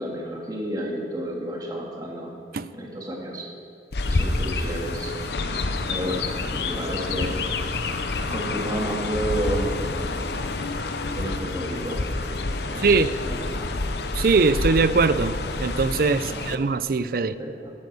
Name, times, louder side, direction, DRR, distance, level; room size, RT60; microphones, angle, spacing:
voice 1, 0.0-2.3 2.7-3.5 4.1-5.2 5.9-7.4 8.3-9.7 11.1-12.0 12.6-13.8 16.2-16.4 17.1-17.7, right 1 dB, 20° right, -2 dB, 2.1 m, -31 dB
Chirp tweet, 3.9-16.6, left 3 dB, 70° left, 0.8 m, -28 dB
voice 2, 12.8-13.1 14.1-17.4, right 4 dB, 55° right, 14 dB, 0.5 m, -21 dB
12.0 x 10.0 x 6.8 m, 2.4 s
head